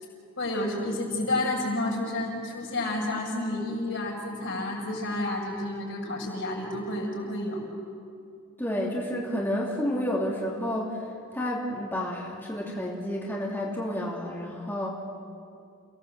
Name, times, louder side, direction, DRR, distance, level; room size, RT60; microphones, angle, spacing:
voice 1, 0.4-7.6, left 1 dB, 65° left, -2 dB, 6.7 m, -30 dB
voice 2, 8.6-15.0, equal, 10° left, -4 dB, 2.8 m, -30 dB
29.5 x 17.5 x 8.1 m, 2.4 s
head